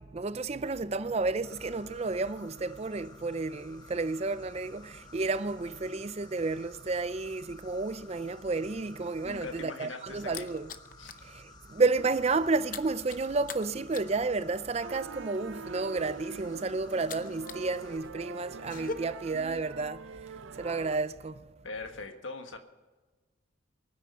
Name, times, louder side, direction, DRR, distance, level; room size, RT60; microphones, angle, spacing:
voice 1, 0.1-10.7 11.2-21.5, right 3 dB, 35° right, 0.5 m, -31 dB
Insect, 1.4-18.0, left 3 dB, 20° left, 1.0 m, -55 dB
voice 2, 9.2-10.5 11.0-11.1 21.6-22.6, left 3 dB, 90° left, 1.6 m, -41 dB
sound 1, 9.5-11.3 11.6-11.9 12.1-17.7 18.0-18.9, left 4 dB, 45° left, 0.7 m, -43 dB
sound 2, 14.8-21.0, right 5 dB, 90° right, 0.6 m, -44 dB
22.5 x 9.7 x 5.6 m
head